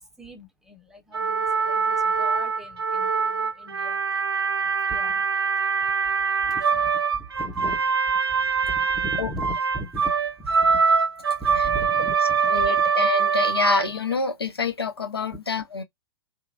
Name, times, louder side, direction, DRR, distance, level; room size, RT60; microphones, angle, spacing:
voice 1, 0.0-4.0 4.6-5.3 5.6-7.8 8.3-10.1 10.4-10.9 11.4-12.8, right 1 dB, 5° right, 0.6 m, -39 dB
sound 1, 1.1-14.1, right 5 dB, 80° right, 0.4 m, -23 dB
voice 2, 12.5-15.8, left 4 dB, 80° left, 0.5 m, -26 dB
2.8 x 2.2 x 2.4 m
figure-of-eight pair, 105°, 13 cm